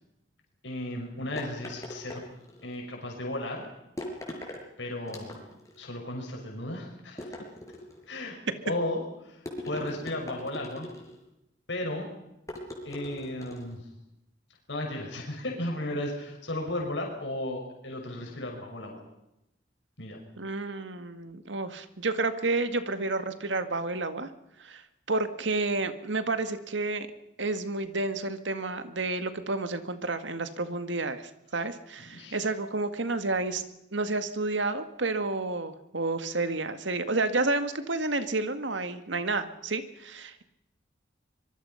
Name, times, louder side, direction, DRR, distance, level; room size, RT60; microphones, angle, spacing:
voice 1, 0.6-2.2 2.6-3.7 4.8-5.4 5.8-7.4 8.1-8.4 8.6-10.9 11.7-12.1 12.8-13.9 14.7-19.0 20.0-20.2 32.1-32.4, left 1 dB, 80° left, 0 dB, 6.2 m, -35 dB
sound 1, 1.4-2.7 4.0-4.6 5.1-5.8 7.2-8.1 9.5-11.2 12.5-13.8, left 1 dB, 20° left, 5.6 m, -40 dB
voice 2, 20.4-24.3 24.6-24.8 25.1-27.1 27.4-33.6 33.9-40.4, right 3 dB, 90° right, 10 dB, 1.9 m, -30 dB
25.0 x 23.0 x 5.8 m, 0.86 s
head